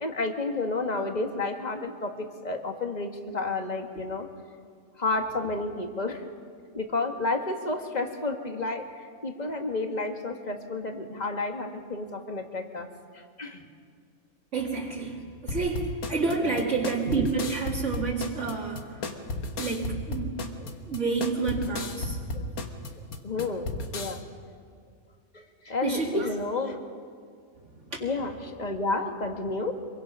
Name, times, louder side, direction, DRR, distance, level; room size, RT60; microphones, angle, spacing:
voice 1, 0.0-4.3 5.0-6.3 6.7-12.9 13.1-13.7 15.6-15.7 16.4-16.7 20.6-20.7 21.9-22.0 22.3-22.5 23.2-24.2 25.3-26.8 28.0-29.8, left 3 dB, 30° left, 4 dB, 1.7 m, -31 dB
voice 2, 14.5-19.0 19.6-20.4 20.9-22.2 22.5-22.6 25.8-26.4 27.7-28.0, right 4 dB, 55° right, -2 dB, 2.2 m, -29 dB
sound 1, 15.5-24.2, left 3 dB, 90° left, 1.9 m, -34 dB
25.0 x 23.0 x 5.5 m, 2.1 s
omnidirectional pair, 1.5 m